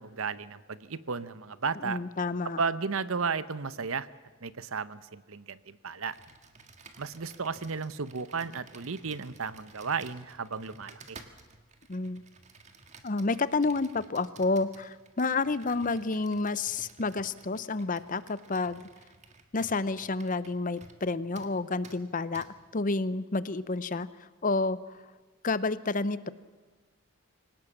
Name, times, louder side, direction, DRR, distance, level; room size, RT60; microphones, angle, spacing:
voice 1, 0.0-2.0 2.6-4.1 4.4-6.1 7.0-11.2, right 5 dB, 65° right, 15 dB, 0.8 m, -34 dB
voice 2, 1.8-2.6 11.9-12.2 13.0-18.8 19.5-22.5 22.7-24.8 25.4-26.3, left 3 dB, 35° left, 16 dB, 0.7 m, -30 dB
Computer keyboard, 6.1-21.1 21.3-21.5 21.8-22.0 22.3-22.5, right 4 dB, 30° right, 1.7 m, -54 dB
24.5 x 18.0 x 7.3 m, 1.4 s
head